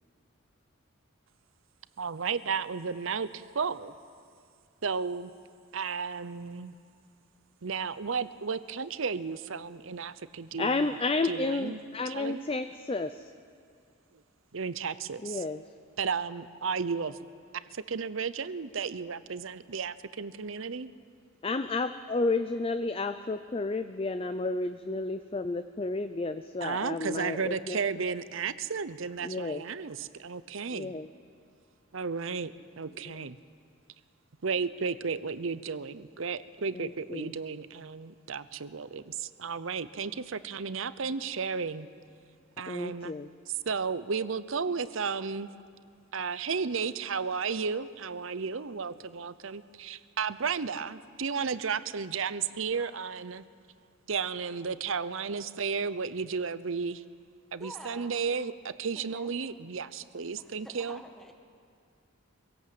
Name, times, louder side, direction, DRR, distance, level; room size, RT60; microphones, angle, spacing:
voice 1, 2.0-3.9 4.8-5.3 5.7-6.8 7.6-11.0 11.2-11.8 12.1-12.4 14.5-15.4 16.0-17.2 17.7-20.9 26.6-30.9 31.9-33.4 34.4-41.9 42.6-43.1 43.7-45.5 46.1-53.4 54.1-57.0 57.5-61.0, right 5 dB, 70° right, 14 dB, 0.7 m, -33 dB
voice 2, 10.6-13.3 15.2-15.6 21.4-27.8 29.2-29.6 30.7-31.1 36.7-37.3 42.7-43.3, left 3 dB, 25° left, 10 dB, 0.5 m, -31 dB
voice 3, 57.6-58.1 59.1-59.3 60.4-61.3, equal, ahead, 3 dB, 1.5 m, -48 dB
24.0 x 17.0 x 7.8 m, 2.3 s
head